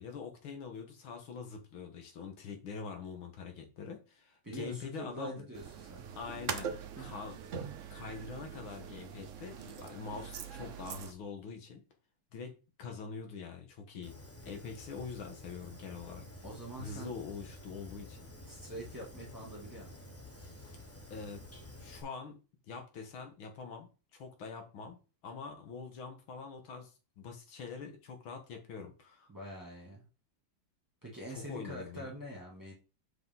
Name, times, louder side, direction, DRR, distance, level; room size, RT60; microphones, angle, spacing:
voice 1, 0.0-5.4 6.2-7.3 7.9-11.8 12.3-12.5 12.8-14.2 14.4-16.3 16.8-18.2 21.1-21.4 21.8-22.4 22.7-25.0 25.2-26.9 27.2-29.3 31.3-32.2, left 5 dB, 85° left, 4 dB, 2.1 m, -44 dB
voice 2, 4.4-6.2 7.0-7.1 16.4-17.2 18.4-19.9 29.3-30.1 31.0-32.7, right 1 dB, 10° right, -3 dB, 2.3 m, -45 dB
sound 1, 5.5-11.1, right 7 dB, 80° right, 0.6 m, -42 dB
Fire, 14.0-22.0, left 1 dB, 10° left, 0.6 m, -51 dB
6.5 x 5.0 x 3.8 m, 0.32 s
omnidirectional pair, 2.2 m